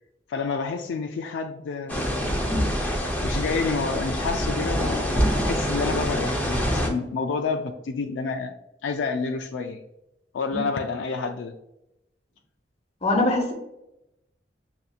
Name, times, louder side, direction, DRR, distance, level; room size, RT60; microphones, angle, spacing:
voice 1, 0.3-2.1 2.8-8.5 8.8-9.8 10.3-11.5, left 4 dB, 75° left, 5 dB, 0.3 m, -29 dB
sound 1, 1.9-6.9, equal, 10° left, 0.7 m, -25 dB
voice 2, 13.0-13.5, left 2 dB, 35° left, 2 dB, 0.9 m, -22 dB
6.8 x 2.6 x 2.4 m, 0.88 s
head